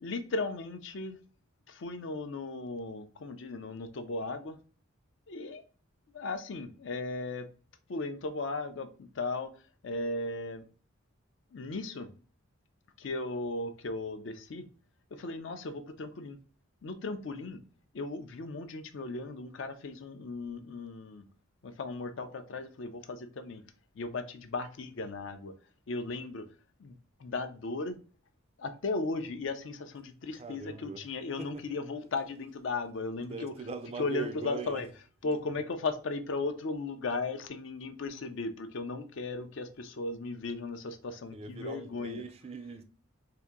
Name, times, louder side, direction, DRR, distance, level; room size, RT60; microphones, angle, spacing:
voice 1, 0.0-1.2 1.7-4.6 5.3-5.6 6.1-7.5 7.9-9.5 9.8-10.6 11.5-12.1 13.0-14.7 15.1-16.4 16.8-17.6 17.9-21.2 21.6-23.6 23.9-25.5 25.9-26.5 26.8-28.0 28.6-33.5 34.0-34.9 35.2-42.2, left 3 dB, 60° left, 0.4 m, -36 dB
voice 2, 30.4-31.0 31.4-31.6 33.2-34.8 41.3-42.8, right 4 dB, 30° right, 0.3 m, -41 dB
2.8 x 2.5 x 3.6 m
head